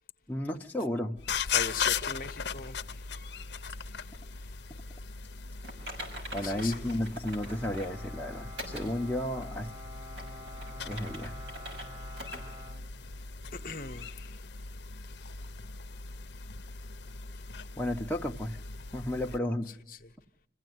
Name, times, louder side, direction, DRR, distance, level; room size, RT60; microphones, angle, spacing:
voice 1, 0.3-1.2 6.3-9.7 10.8-11.3 17.7-18.6 18.9-19.7, left 1 dB, 10° left, 0.9 m, -33 dB
sound 1, 1.2-19.4, left 6 dB, 75° left, 0.8 m, -39 dB
voice 2, 1.5-3.0 3.8-3.9 6.4-6.9 13.5-14.4, left 4 dB, 50° left, 1.0 m, -39 dB
Typing, 5.6-8.0 8.6-8.9 9.4-9.5 10.0-11.9 12.2-12.4 12.8-12.9 13.4-13.5, equal, 90° right, 6.6 m, -43 dB
Bowed string instrument, 7.4-13.6, equal, 20° right, 1.4 m, -48 dB
26.5 x 16.0 x 9.3 m
head